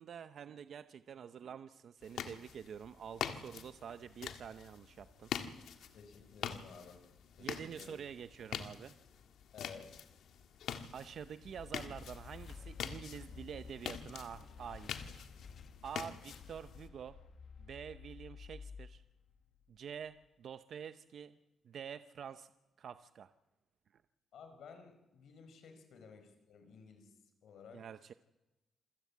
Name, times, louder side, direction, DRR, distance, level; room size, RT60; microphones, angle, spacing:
voice 1, 0.0-5.3 7.4-8.9 10.9-15.3 15.8-17.2 17.6-19.0 19.7-21.4 21.6-22.5 22.8-23.3 23.9-24.0 27.7-28.1, right 8 dB, 55° right, 11 dB, 0.7 m, -47 dB
sound 1, 2.0-16.9, left 8 dB, 90° left, 1.7 m, -46 dB
voice 2, 5.9-7.0 7.4-7.9 9.5-9.9 24.3-27.1 27.4-27.8, left 6 dB, 75° left, 7 dB, 4.8 m, -54 dB
sound 2, 10.9-20.0, left 6 dB, 55° left, 1.1 m, -52 dB
27.0 x 15.5 x 8.5 m, 1.0 s
wide cardioid pair, 160°, 0 cm